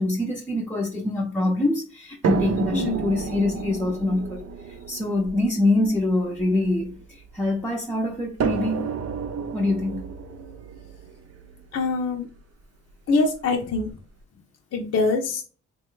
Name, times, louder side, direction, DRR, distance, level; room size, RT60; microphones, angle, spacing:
voice 1, 0.0-4.4 4.7-8.8 9.5-10.0, left 2 dB, 5° left, 0.6 m, -25 dB
sound 1, 2.2-7.5 8.4-12.4 13.3-13.4 13.9-14.0, right 6 dB, 55° right, 0.6 m, -31 dB
voice 2, 2.7-3.0 11.7-12.3 13.1-13.9 14.7-15.4, left 3 dB, 55° left, 0.7 m, -24 dB
3.1 x 2.2 x 3.0 m
cardioid pair, 65°, 30 cm